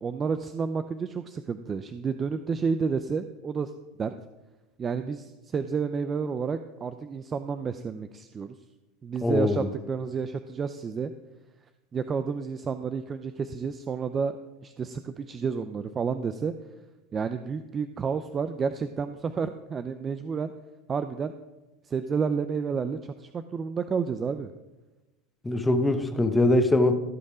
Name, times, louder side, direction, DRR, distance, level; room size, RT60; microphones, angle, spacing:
voice 1, 0.0-3.7 4.0-4.1 4.8-8.5 9.0-11.1 11.9-14.4 14.6-16.5 17.1-20.5 20.9-21.3 21.8-24.5, right 5 dB, 30° right, 10 dB, 0.5 m, -30 dB
voice 2, 9.2-9.6 25.4-26.9, left 2 dB, 10° left, 8 dB, 1.0 m, -22 dB
15.5 x 5.4 x 4.9 m, 1.1 s
supercardioid pair, 105°, 0 cm